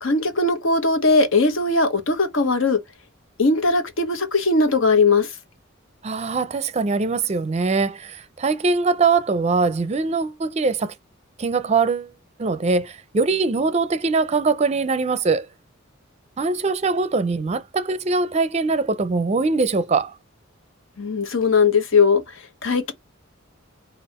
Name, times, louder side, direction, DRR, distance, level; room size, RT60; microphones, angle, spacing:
voice 1, 0.0-2.8 3.4-5.3 21.0-22.2 22.6-22.9, left 3 dB, 75° left, 1.0 m, -19 dB
voice 2, 6.0-10.9 11.4-12.1 12.4-15.5 16.4-20.1, right 4 dB, 35° right, 0.5 m, -22 dB
5.4 x 2.4 x 4.1 m
head